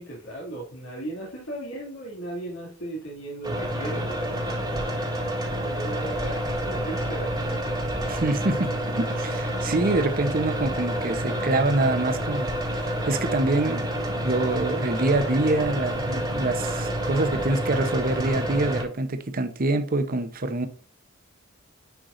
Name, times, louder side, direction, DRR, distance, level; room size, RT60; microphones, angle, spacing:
voice 1, 0.0-4.4 5.2-7.7, right 1 dB, 70° left, 2.6 m, -37 dB
sound 1, 3.4-18.8, equal, 20° right, 1.5 m, -28 dB
voice 2, 8.1-12.5 12.8-20.7, right 2 dB, 45° right, 0.8 m, -26 dB
10.0 x 4.7 x 2.6 m
head